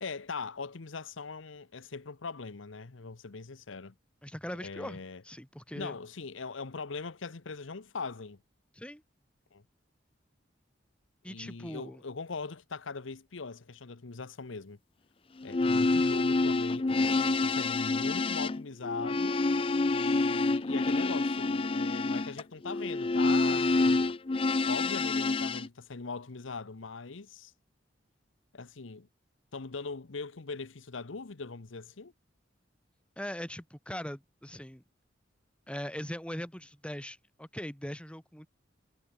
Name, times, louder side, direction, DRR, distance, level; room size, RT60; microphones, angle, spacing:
voice 1, 0.0-3.9 4.6-5.2 5.7-8.4 9.5-9.6 11.3-14.8 15.4-19.4 19.9-24.2 24.6-27.5 28.5-29.1 29.5-32.1, left 4 dB, 80° left, 0.9 m, -41 dB
voice 2, 4.2-5.9 8.7-9.0 11.2-12.0 33.2-34.8 35.7-38.5, equal, 5° left, 2.8 m, -40 dB
sound 1, 15.4-25.7, left 3 dB, 30° left, 0.5 m, -27 dB
head